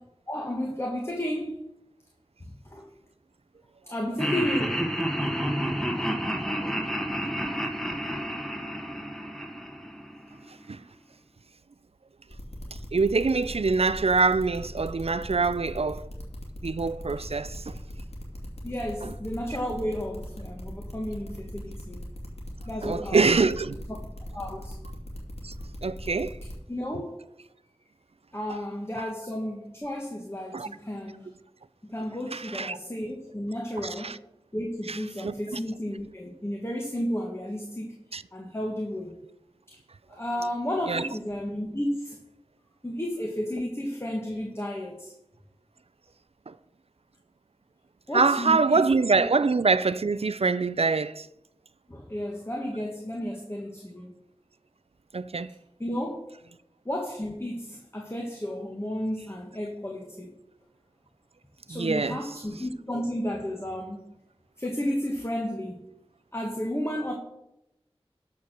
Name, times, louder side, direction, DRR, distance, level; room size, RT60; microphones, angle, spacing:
voice 1, 0.3-1.6 2.4-2.9 3.9-4.8 18.6-22.0 22.6-23.5 24.3-24.8 26.7-27.2 28.3-31.3 31.8-34.2 34.5-38.0 38.3-39.2 39.7-39.8 40.1-42.2 42.8-45.1 48.1-49.3 51.9-54.1 55.8-56.2 56.8-60.3 61.7-64.1 64.6-65.8 66.3-67.1, equal, 25° left, 1.5 m, -32 dB
Laughter, 4.2-10.4, equal, 5° left, 1.4 m, -30 dB
sound 1, 12.3-26.5, equal, 80° left, 2.4 m, -39 dB
voice 2, 12.9-16.1 16.6-17.8 19.0-19.1 22.8-23.8 25.4-25.5 25.8-26.4 28.5-28.6 29.0-29.1 30.5-30.7 32.3-32.8 33.8-34.2 34.9-35.6 38.1-38.2 40.9-41.0 46.5-46.6 48.1-51.3 55.1-55.5 61.7-62.2, right 4 dB, 75° right, 0.4 m, -25 dB
12.5 x 4.6 x 6.6 m
wide cardioid pair, 45°, 10 cm